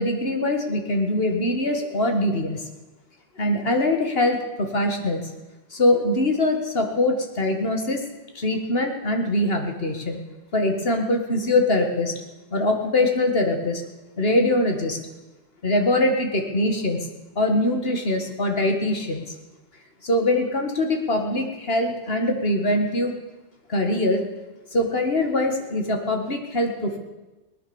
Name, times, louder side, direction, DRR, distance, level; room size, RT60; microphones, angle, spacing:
voice 1, 0.0-2.6 3.4-5.2 5.7-8.0 8.4-10.2 10.5-12.1 12.5-13.8 14.2-15.0 15.6-17.0 17.4-19.3 20.0-23.1 23.7-24.3 24.7-27.0, left 1 dB, 55° left, 4 dB, 2.1 m, -23 dB
19.0 x 10.0 x 7.1 m, 1.1 s
omnidirectional pair, 1.2 m